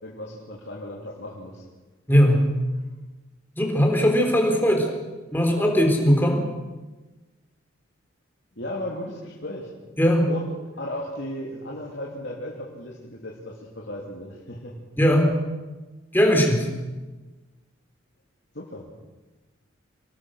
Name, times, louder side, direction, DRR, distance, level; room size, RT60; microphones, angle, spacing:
voice 1, 0.0-1.6 8.6-9.7 10.3-10.5 10.7-14.7 18.5-18.8, left 1 dB, 55° left, -3 dB, 3.1 m, -35 dB
voice 2, 2.1-2.4 3.6-4.9 5.3-6.4 10.0-10.2 15.0-15.3 16.1-16.7, equal, 10° left, 2 dB, 3.7 m, -19 dB
25.5 x 19.0 x 6.4 m, 1.2 s
head